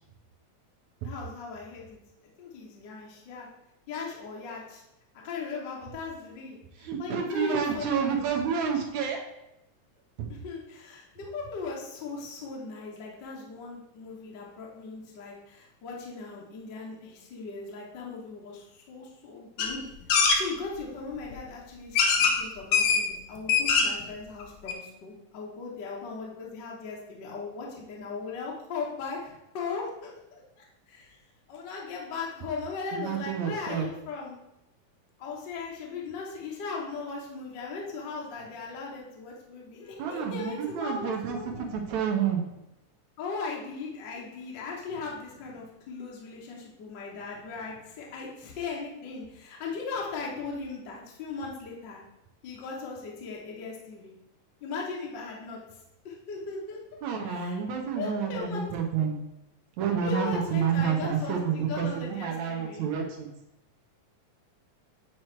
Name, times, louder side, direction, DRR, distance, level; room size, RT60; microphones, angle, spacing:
voice 1, 1.0-2.0 2.4-3.5 3.9-4.8 5.2-8.3 10.3-19.8 20.1-31.2 31.5-34.4 35.2-41.7 43.2-52.0 52.4-54.1 54.6-55.6 56.0-56.8 57.3-57.6 58.0-58.6 60.0-62.9, left 4 dB, 55° left, -3 dB, 1.3 m, -38 dB
voice 2, 6.8-9.2 10.2-10.3 32.9-33.9 40.0-41.4 41.7-42.4 57.0-59.2 59.8-63.3, right 7 dB, 75° right, 1 dB, 2.1 m, -29 dB
sound 1, 19.6-19.7 20.1-20.4 21.3-21.4 22.0-22.4 22.7-23.0 23.4-24.0 24.4-24.5 24.7-24.8, left 5 dB, 75° left, 1.8 m, -22 dB
8.6 x 3.0 x 4.5 m, 0.86 s
omnidirectional pair, 3.4 m